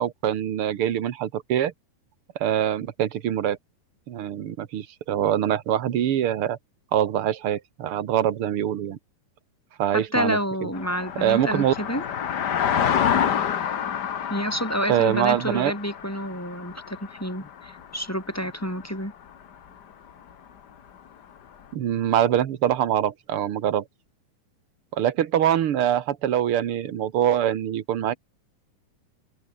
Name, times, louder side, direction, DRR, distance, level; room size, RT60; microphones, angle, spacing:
voice 1, 0.0-1.7 2.3-3.6 4.1-6.6 6.9-9.0 9.8-10.4 11.2-11.7 14.9-15.7 21.7-23.8 24.9-28.1, right 10 dB, 55° right, 1.6 m, -24 dB
voice 2, 9.9-12.0 14.3-19.1, equal, 5° left, 5.9 m, -29 dB
sound 1, 10.7-18.1 18.6-18.8, left 8 dB, 85° left, 0.9 m, -28 dB
omnidirectional pair, 3.9 m